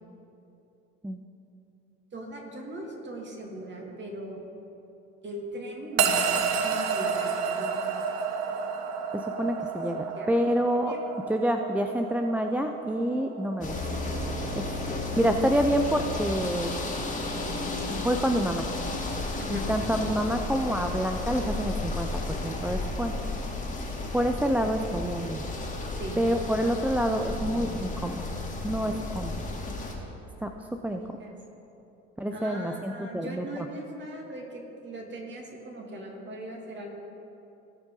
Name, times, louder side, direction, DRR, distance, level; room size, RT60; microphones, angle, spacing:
voice 1, 2.1-4.4 5.2-7.8 10.0-10.3 10.9-11.3 15.2-15.3 19.4-19.7 25.9-26.2 30.9-31.3 32.3-36.9, right 1 dB, 35° right, 0 dB, 2.6 m, -40 dB
sound 1, 6.0-16.3, right 6 dB, 55° right, 1.1 m, -31 dB
voice 2, 9.1-10.9 11.3-13.8 14.6-14.7 15.2-16.7 17.9-18.6 19.5-23.1 24.1-25.4 26.2-28.3 28.6-29.3 30.4-30.5 30.8-31.0 32.2-33.4, equal, 5° right, 5 dB, 0.4 m, -27 dB
Fishing village environment, 13.6-30.0, left 2 dB, 20° left, 2.4 m, -33 dB
18.0 x 6.0 x 3.9 m, 2.9 s
hypercardioid pair, 75°, 33 cm